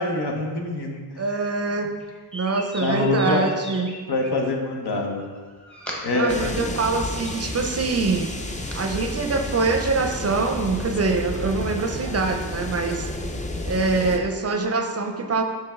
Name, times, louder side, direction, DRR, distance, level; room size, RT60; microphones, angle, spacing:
voice 1, 0.0-1.5 2.8-3.5 4.1-5.3 6.0-6.7, left 2 dB, 80° left, 1 dB, 1.0 m, -25 dB
voice 2, 1.2-1.9 2.3-3.9 6.1-8.3 8.8-13.1 13.7-15.4, right 3 dB, 40° right, 5 dB, 0.5 m, -24 dB
sound 1, 2.0-4.3 5.2-6.3 6.7-8.8, equal, 5° left, 0.8 m, -38 dB
sound 2, 6.3-14.2, left 1 dB, 20° left, 0.4 m, -31 dB
6.2 x 5.2 x 3.4 m, 1.5 s
wide cardioid pair, 165°, 39 cm